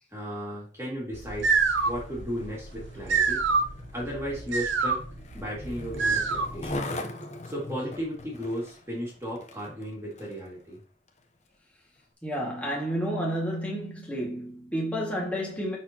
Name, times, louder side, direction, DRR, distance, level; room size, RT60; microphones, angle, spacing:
voice 1, 0.1-1.5 1.8-3.4 3.9-5.0 5.3-6.9 7.4-10.8, equal, 15° right, 2.4 m, -35 dB
sound 1, 1.1-6.7, right 4 dB, 80° right, 0.7 m, -27 dB
Skateboard, 1.6-10.5 11.1-11.2, left 1 dB, 35° left, 0.9 m, -41 dB
voice 2, 12.2-15.8, equal, 10° left, 2.0 m, -30 dB
10.0 x 4.4 x 3.0 m
head